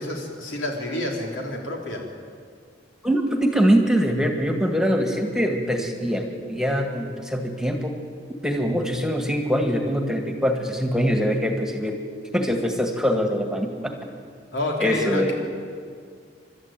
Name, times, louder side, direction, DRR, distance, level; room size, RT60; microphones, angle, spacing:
voice 1, 0.0-2.0 14.5-15.3, left 1 dB, 90° left, 0 dB, 4.2 m, -28 dB
voice 2, 3.0-7.9 8.4-12.0 12.3-13.9 14.8-15.3, equal, 5° right, 3 dB, 1.8 m, -23 dB
29.5 x 12.5 x 9.1 m, 2.1 s
head